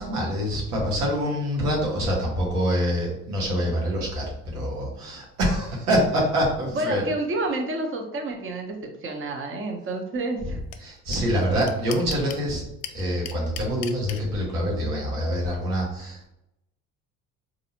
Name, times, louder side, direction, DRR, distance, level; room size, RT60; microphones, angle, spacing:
voice 1, 0.0-7.0 10.8-12.7 12.9-16.3, equal, 90° right, -3 dB, 1.2 m, -25 dB
voice 2, 6.7-10.6, right 2 dB, 30° right, 3 dB, 0.8 m, -29 dB
sound 1, 10.7-10.8 11.1-11.2 11.4-12.4 12.8-14.2, left 11 dB, 65° left, 0.6 m, -36 dB
4.0 x 2.6 x 2.8 m, 0.84 s
hypercardioid pair, 60°, 45 cm